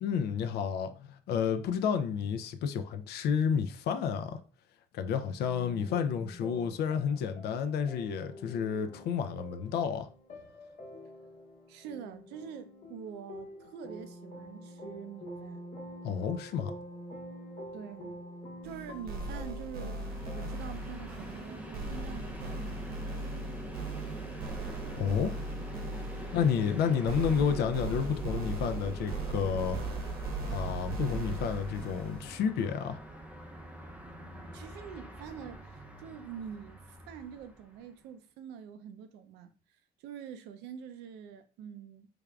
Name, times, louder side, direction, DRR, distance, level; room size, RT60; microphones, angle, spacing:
voice 1, 0.0-4.4 4.9-10.1 16.0-16.7 24.9-25.3 26.3-29.8 30.5-33.0, left 7 dB, 75° left, 0.4 m, -30 dB
sound 1, 5.5-20.6, equal, 45° left, 0.9 m, -47 dB
voice 2, 11.7-15.7 17.7-18.2 18.6-22.8 26.5-27.1 34.5-42.1, right 8 dB, 90° right, 0.5 m, -45 dB
sound 2, 18.6-32.3, right 3 dB, 65° right, 0.9 m, -38 dB
Train, 19.8-37.9, right 1 dB, 10° right, 0.5 m, -45 dB
3.6 x 3.3 x 2.3 m
cardioid pair, 110°, 17 cm